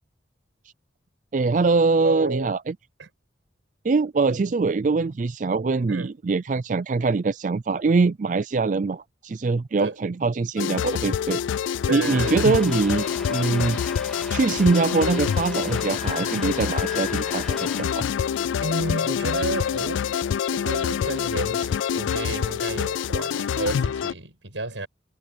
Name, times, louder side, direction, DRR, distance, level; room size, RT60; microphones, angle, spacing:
voice 1, 1.3-2.7 3.8-11.4 11.9-13.8 14.3-18.1, right 4 dB, 40° right, 0.4 m, -23 dB
voice 2, 2.0-2.6 3.0-3.1 5.9-6.1 9.8-10.0 11.9-12.5 18.6-20.1 20.5-24.9, right 2 dB, 85° right, 6.1 m, -31 dB
sound 1, 10.6-24.1, left 8 dB, 85° left, 0.3 m, -26 dB
Truck, 12.0-17.8, left 1 dB, 5° left, 2.6 m, -40 dB
sound 2, 13.1-18.1, left 10 dB, 45° left, 4.3 m, -42 dB
head